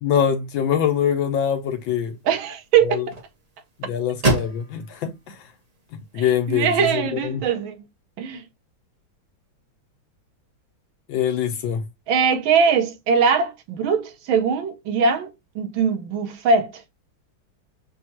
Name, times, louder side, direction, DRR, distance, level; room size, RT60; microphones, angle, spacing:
voice 1, 0.0-2.1 2.8-3.0 3.8-5.4 6.1-7.4 11.1-11.8, left 8 dB, 75° left, 1.4 m, -24 dB
sound 1, 0.7-6.8, right 2 dB, 55° right, 0.4 m, -32 dB
voice 2, 2.2-3.1 6.2-7.8 8.2-8.4 12.1-16.7, right 6 dB, 75° right, 1.4 m, -21 dB
6.2 x 2.3 x 2.9 m
omnidirectional pair, 2.3 m